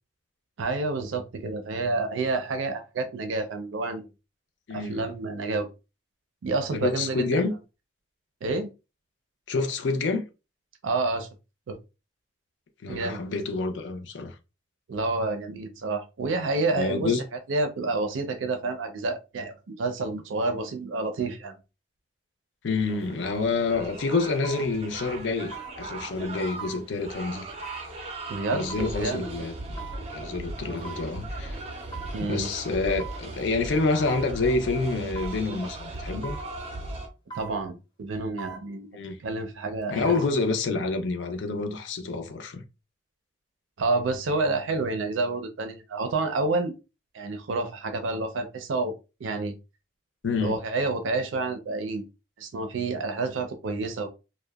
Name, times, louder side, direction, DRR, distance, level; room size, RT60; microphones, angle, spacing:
voice 1, 0.6-4.1 4.7-5.7 6.4-7.4 8.4-8.7 10.8-11.3 11.7-11.8 12.9-13.2 14.9-17.1 17.5-21.6 28.3-29.3 32.1-32.5 37.3-38.9 39.2-40.2 43.8-46.7 47.1-49.0 49.2-49.5 50.4-52.0 52.4-54.1, right 3 dB, 90° right, 0.4 m, -29 dB
voice 2, 4.7-5.0 6.7-7.5 9.5-10.2 12.8-14.3 16.8-17.2 22.6-27.5 28.5-29.8 30.1-31.6 32.3-36.4 38.9-39.2 39.9-42.6 50.2-50.6, left 3 dB, 75° left, 0.5 m, -28 dB
sound 1, 22.8-37.1, right 2 dB, 35° right, 0.4 m, -38 dB
sound 2, 23.3-23.4 24.4-24.7 25.5-25.8 26.6-26.8 27.6-27.9 28.7-28.9 29.8-30.0 30.8-31.1 31.9-32.2 33.0-33.3 34.1-34.3 35.1-35.4 36.2-36.5 37.3-37.6 38.4-38.6 39.8-40.3 40.7-40.8, right 6 dB, 25° left, 0.5 m, -40 dB
2.7 x 2.1 x 2.2 m
head